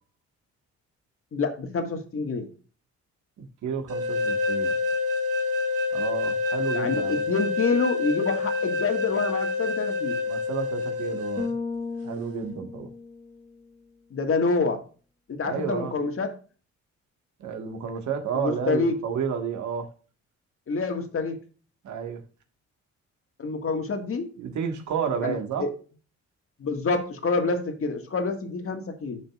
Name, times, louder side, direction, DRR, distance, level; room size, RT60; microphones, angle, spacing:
voice 1, 1.3-2.5 6.7-10.2 14.1-14.8 15.3-16.3 18.3-19.0 20.7-21.4 23.4-24.3 25.2-25.7 26.6-29.2, left 4 dB, 45° left, 1.8 m, -27 dB
voice 2, 3.4-4.7 5.9-7.2 10.3-11.6 12.0-12.9 15.4-16.0 17.4-19.9 21.8-22.2 24.4-25.7, right 7 dB, 70° right, 1.6 m, -31 dB
sound 1, 3.9-11.5, left 3 dB, 50° right, 1.7 m, -27 dB
Bass guitar, 11.4-13.7, left 4 dB, 20° left, 0.9 m, -35 dB
11.0 x 6.3 x 2.4 m
cardioid pair, 90°, 30 cm